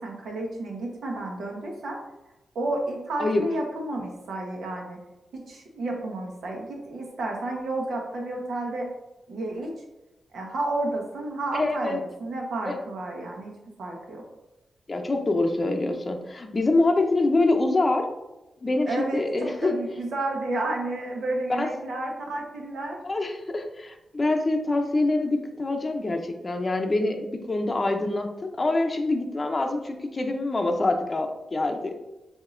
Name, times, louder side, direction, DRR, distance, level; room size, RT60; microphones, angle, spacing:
voice 1, 0.0-2.0 2.5-5.0 5.3-8.9 9.3-9.7 10.3-13.5 13.8-14.2 18.9-23.0, right 2 dB, 85° right, 0 dB, 1.1 m, -31 dB
voice 2, 11.5-12.0 12.6-12.8 14.9-18.1 18.6-19.7 21.6-21.7 23.0-31.9, left 2 dB, 30° left, 4 dB, 0.6 m, -25 dB
7.3 x 2.8 x 2.5 m, 1.0 s
cardioid pair, 85°, 0 cm